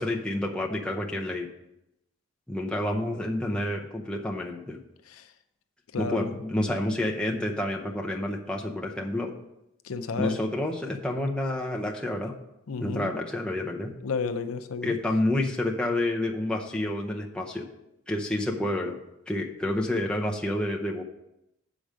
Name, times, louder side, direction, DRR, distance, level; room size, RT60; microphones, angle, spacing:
voice 1, 0.0-1.5 2.5-4.8 6.0-9.3 10.2-12.3 12.8-13.9 14.8-17.7 18.1-19.0 19.3-21.0, left 1 dB, 5° left, 0.6 m, -29 dB
voice 2, 5.9-6.4 9.8-10.4 12.7-13.1 14.0-15.0, left 5 dB, 80° left, 0.6 m, -32 dB
6.9 x 5.1 x 6.2 m
head